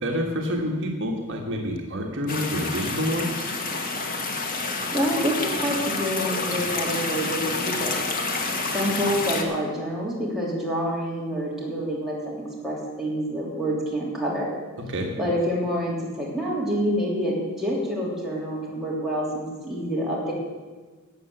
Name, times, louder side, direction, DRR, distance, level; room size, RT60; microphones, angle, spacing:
voice 1, 0.0-3.5 14.9-15.1, equal, 55° right, 1 dB, 1.6 m, -28 dB
sound 1, 2.3-9.4, left 3 dB, 40° left, 1.4 m, -28 dB
voice 2, 4.9-8.0 8.7-14.5 15.2-20.3, equal, ahead, -6 dB, 3.1 m, -27 dB
13.0 x 7.8 x 7.8 m, 1.4 s
head